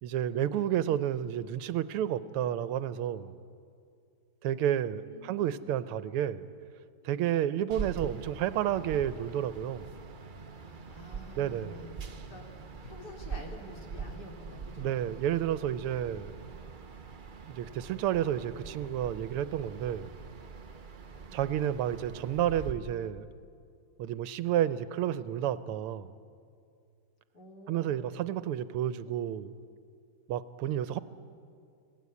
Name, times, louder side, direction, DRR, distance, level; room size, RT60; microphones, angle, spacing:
voice 1, 0.0-3.3 4.4-6.4 7.0-9.9 11.4-11.8 14.8-16.4 17.5-20.1 21.3-23.3 24.0-26.1 27.7-29.5 30.3-31.0, right 10 dB, 90° right, 15 dB, 1.7 m, -31 dB
voice 2, 5.0-5.5 10.5-11.9 12.3-12.5 12.8-15.0 21.3-21.5 27.3-28.0, left 1 dB, 45° left, 1 dB, 3.5 m, -48 dB
sound 1, 7.7-22.7, right 5 dB, 50° right, 0.6 m, -44 dB
27.0 x 18.0 x 8.4 m, 2.3 s
omnidirectional pair, 2.4 m